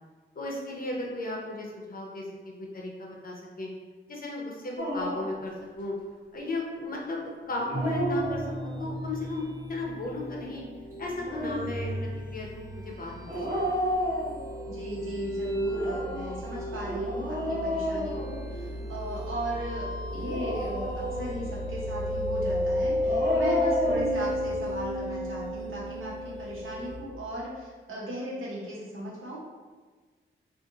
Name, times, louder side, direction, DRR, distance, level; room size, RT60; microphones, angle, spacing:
voice 1, 0.3-3.7 4.1-5.9 6.3-9.4 9.7-10.6 11.0-13.7, left 2 dB, 45° left, -2 dB, 0.7 m, -35 dB
Dog, 4.8-5.4 7.5-8.9 11.0-11.7 13.2-14.7 15.6-18.8 20.1-21.5 22.8-24.2, equal, 40° right, 1.2 m, -31 dB
sound 1, 7.7-26.9, equal, 20° right, 0.7 m, -33 dB
voice 2, 14.6-29.4, right 1 dB, 85° right, -5 dB, 1.0 m, -37 dB
2.5 x 2.5 x 3.8 m, 1.4 s
wide cardioid pair, 125°, 21 cm